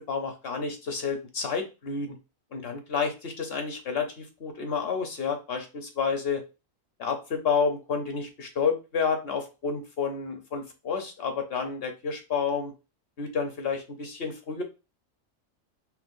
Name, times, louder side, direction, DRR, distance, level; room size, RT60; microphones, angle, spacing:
voice 1, 0.1-2.1 2.5-6.4 7.0-12.7 13.2-14.6, left 5 dB, 55° left, 5 dB, 0.9 m, -30 dB
5.7 x 2.0 x 2.5 m, 0.28 s
omnidirectional pair, 1.3 m